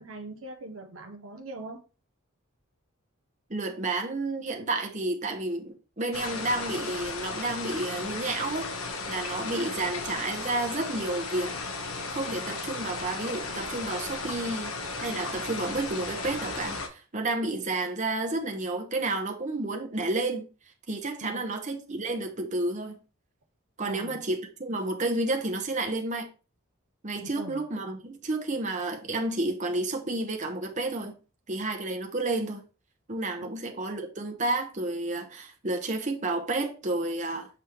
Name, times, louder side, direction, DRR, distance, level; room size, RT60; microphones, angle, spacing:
voice 1, 0.0-1.8 21.2-21.5 23.8-24.2 27.2-27.6, right 2 dB, 75° right, 0.9 m, -41 dB
voice 2, 3.5-8.7 9.1-11.5 12.1-20.5 20.9-23.0 23.8-26.3 27.0-31.1 31.5-32.6 33.1-37.5, right 2 dB, 35° right, 1.1 m, -31 dB
sound 1, 6.1-16.9, left 3 dB, 85° left, 1.2 m, -35 dB
7.4 x 3.5 x 4.4 m
head